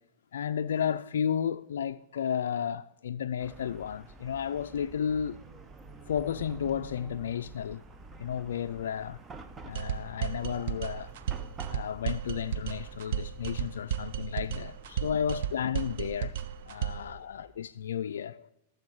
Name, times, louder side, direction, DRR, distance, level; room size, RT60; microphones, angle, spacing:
voice 1, 0.3-5.4 6.1-7.8 8.2-9.2 9.6-11.1 11.7-16.4 16.6-18.5, left 8 dB, 80° left, 0.3 m, -33 dB
Chatter / Car passing by / Traffic noise roadway noise, 3.4-17.7, right 3 dB, 20° right, 0.9 m, -49 dB
sound 1, 9.8-17.1, right 9 dB, 65° right, 0.7 m, -34 dB
12.5 x 7.7 x 4.7 m
hypercardioid pair, 110°, 0 cm